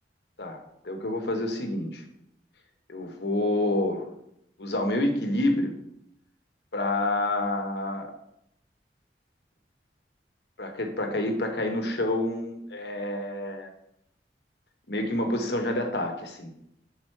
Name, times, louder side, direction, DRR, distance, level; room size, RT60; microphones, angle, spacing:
voice 1, 0.8-2.0 2.9-4.1 4.6-5.7 6.7-8.1 10.6-13.7 14.9-16.5, left 1 dB, 65° left, 4 dB, 1.0 m, -28 dB
5.4 x 4.6 x 4.4 m, 0.77 s
head